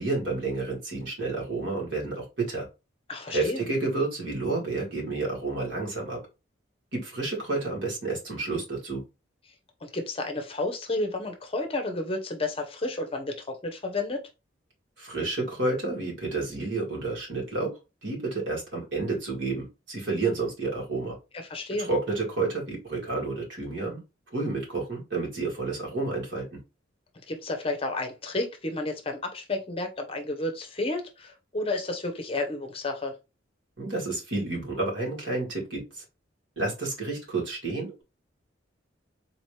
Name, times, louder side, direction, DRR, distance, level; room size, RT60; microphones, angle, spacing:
voice 1, 0.0-2.7 3.3-6.2 6.9-9.0 15.0-17.7 18.0-21.2 21.8-24.0 24.3-26.4 33.8-36.0 36.6-38.0, right 3 dB, 75° right, 2.3 m, -30 dB
voice 2, 3.1-3.6 9.8-14.2 21.3-21.9 27.3-33.2, left 2 dB, 30° left, 0.6 m, -31 dB
4.0 x 2.9 x 3.2 m
head